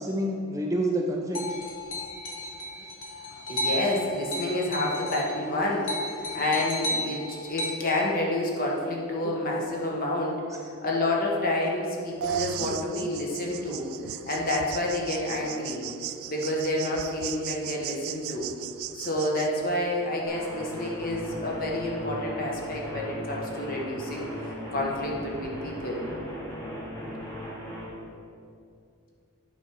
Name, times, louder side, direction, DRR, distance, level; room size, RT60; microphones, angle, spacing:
voice 1, 0.0-1.4 9.2-9.4 12.5-13.1 14.1-14.2, right 1 dB, 15° right, 1 dB, 0.5 m, -29 dB
sound 1, 1.4-5.3 5.6-7.7, left 1 dB, 60° left, 1.1 m, -33 dB
voice 2, 3.5-10.4 10.8-13.9 14.2-15.8 16.3-18.5 18.9-26.0, left 1 dB, 40° left, -2 dB, 1.2 m, -29 dB
sound 2, 12.2-19.5, right 11 dB, 75° right, 0.3 m, -37 dB
sound 3, 20.3-27.9, equal, 10° left, 1.6 m, -38 dB
8.7 x 5.1 x 4.6 m, 2.5 s
head